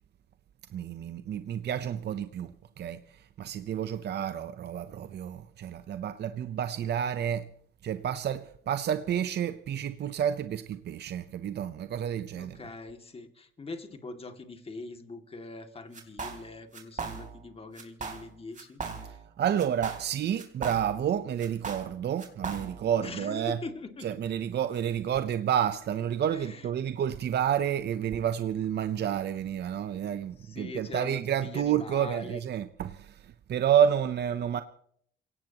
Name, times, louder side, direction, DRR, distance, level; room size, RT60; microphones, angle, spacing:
voice 1, 0.7-7.4 7.8-12.7 19.4-23.6 24.0-34.6, right 9 dB, 55° right, 0.7 m, -30 dB
voice 2, 12.4-19.2 23.0-24.1 26.3-26.7 30.4-32.4, left 3 dB, 30° left, 2.3 m, -42 dB
sound 1, 15.9-16.5 16.7-17.5 17.8-18.3 18.5-19.3 19.6-21.1 21.4-22.9, right 5 dB, 40° right, 3.6 m, -38 dB
28.0 x 17.5 x 3.0 m
cardioid pair, 90°, 20 cm